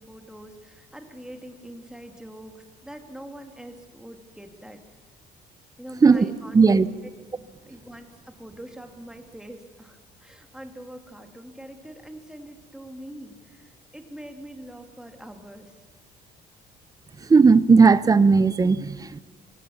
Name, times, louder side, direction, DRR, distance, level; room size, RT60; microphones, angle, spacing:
voice 1, 0.0-4.8 5.8-6.8 7.7-15.8, right 1 dB, 5° right, 2.3 m, -43 dB
voice 2, 6.5-6.9 17.2-19.2, right 4 dB, 20° right, 0.7 m, -16 dB
23.0 x 17.0 x 7.2 m
cardioid pair, 110°, 17 cm